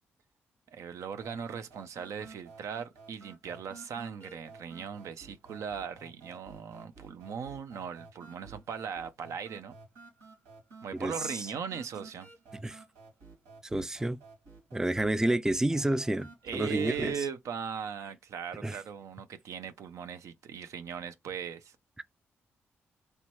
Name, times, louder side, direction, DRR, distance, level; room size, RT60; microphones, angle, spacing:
voice 1, 0.7-9.7 10.8-12.3 16.4-21.7, right 7 dB, 70° right, 0.5 m, -39 dB
sound 1, 1.2-17.2, right 4 dB, 90° right, 2.1 m, -52 dB
voice 2, 10.9-11.5 12.6-12.8 13.6-14.2 14.7-17.2 18.6-18.8, right 1 dB, 10° right, 0.4 m, -30 dB
3.2 x 2.8 x 4.5 m
supercardioid pair, 45°, 5 cm